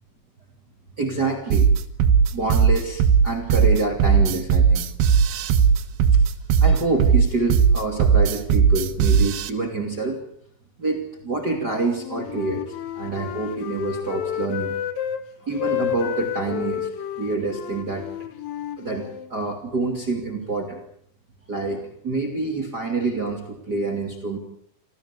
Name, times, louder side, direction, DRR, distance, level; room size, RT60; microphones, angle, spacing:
voice 1, 1.0-1.7 2.3-4.9 6.1-6.2 6.6-10.2 10.8-12.6 13.0-14.7 15.4-16.9 17.2-18.3 18.8-20.8 21.5-24.4, right 3 dB, 30° right, 3 dB, 2.8 m, -27 dB
sound 1, 1.5-9.5, right 6 dB, 85° right, 3.3 m, -17 dB
Wind instrument woodwind instrument, 11.9-15.2 15.5-19.3, left 11 dB, 70° left, 3.2 m, -30 dB
26.5 x 16.5 x 8.4 m, 0.69 s
omnidirectional pair, 4.4 m